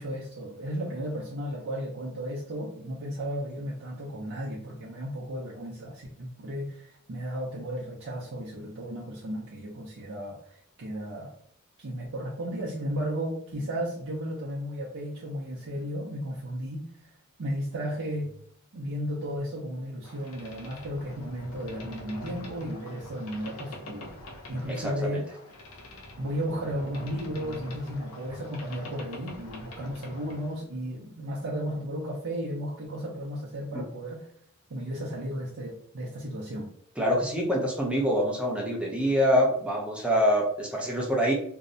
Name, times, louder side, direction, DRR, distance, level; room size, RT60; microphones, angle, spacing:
voice 1, 0.0-11.3 11.8-17.1 17.4-18.3 18.7-24.1 24.5-25.3 26.2-34.3 34.7-36.7, equal, 60° right, -5 dB, 0.5 m, -34 dB
Boat Water vehicle, 20.0-30.6, left 1 dB, 80° left, 0.6 m, -44 dB
voice 2, 24.7-25.2 33.7-33.8 37.0-41.3, equal, 5° right, -2 dB, 0.4 m, -25 dB
2.6 x 2.0 x 2.5 m, 0.66 s
head